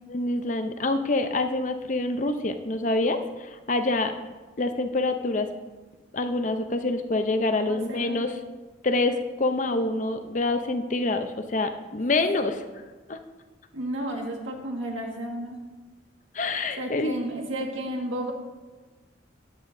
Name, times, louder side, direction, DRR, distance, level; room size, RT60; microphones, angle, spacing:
voice 1, 0.1-4.1 4.6-5.5 6.1-8.3 8.8-12.6 13.1-13.2 16.3-17.2, left 2 dB, 40° left, 8 dB, 0.6 m, -26 dB
voice 2, 7.6-8.2 13.7-15.6 16.8-18.3, right 1 dB, 80° right, 1 dB, 1.7 m, -32 dB
13.5 x 9.9 x 2.6 m, 1.3 s
head